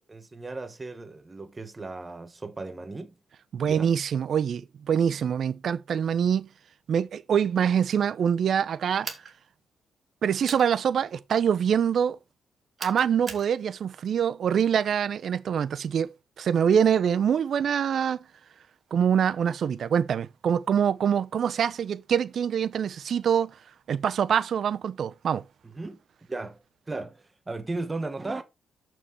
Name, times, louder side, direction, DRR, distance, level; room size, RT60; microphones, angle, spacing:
voice 1, 0.1-3.2 3.6-4.0 25.6-26.0 26.3-28.4, right 3 dB, 20° right, 1.3 m, -36 dB
voice 2, 3.5-6.5 6.9-9.1 10.2-12.2 12.8-16.1 16.4-18.2 18.9-23.5 23.9-25.4, right 8 dB, 60° right, 0.7 m, -25 dB
sound 1, 9.0-9.3 10.4-10.7 12.8-13.5, right 5 dB, 40° right, 2.2 m, -37 dB
6.9 x 6.2 x 4.5 m
cardioid pair, 105°, 0 cm